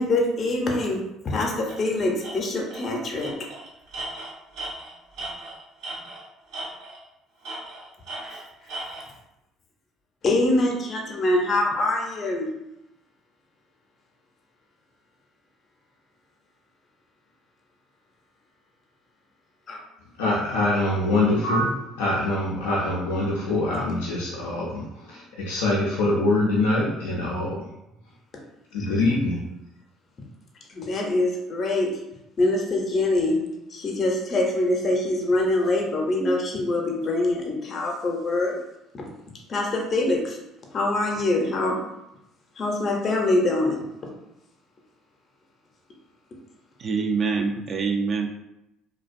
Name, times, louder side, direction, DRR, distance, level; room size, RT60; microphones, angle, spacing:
voice 1, 0.0-3.3 8.2-8.4 10.2-12.5 19.7-19.8 28.8-28.9 30.7-31.9 32.4-33.4 33.7-38.6 38.9-39.0 39.5-40.4 40.7-41.8 42.6-43.8, left 2 dB, 45° left, 0 dB, 0.6 m, -24 dB
Tools, 1.7-1.8 2.2-2.3 2.7-2.9 3.2-6.2 6.5-7.1 7.4-9.1, right 2 dB, 80° right, 0.8 m, -36 dB
voice 2, 20.2-27.6 28.7-29.4, left 2 dB, 90° left, -5 dB, 0.4 m, -24 dB
voice 3, 46.8-48.3, right 5 dB, 50° right, 3 dB, 0.3 m, -25 dB
2.4 x 2.1 x 2.5 m, 0.87 s
supercardioid pair, 70°, 0 cm